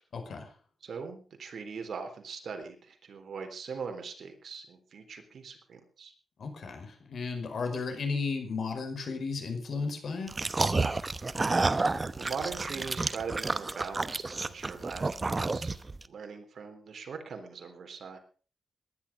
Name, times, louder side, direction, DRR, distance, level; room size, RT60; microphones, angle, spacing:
voice 1, 0.1-0.5 6.4-10.3, left 4 dB, 65° left, 6 dB, 5.1 m, -34 dB
voice 2, 0.8-6.1 12.2-15.8 16.1-18.2, right 5 dB, 65° right, 6 dB, 3.7 m, -41 dB
sound 1, 10.3-16.0, right 3 dB, 25° right, 0.9 m, -30 dB
19.0 x 11.0 x 5.3 m, 0.41 s
wide cardioid pair, 110°, 0 cm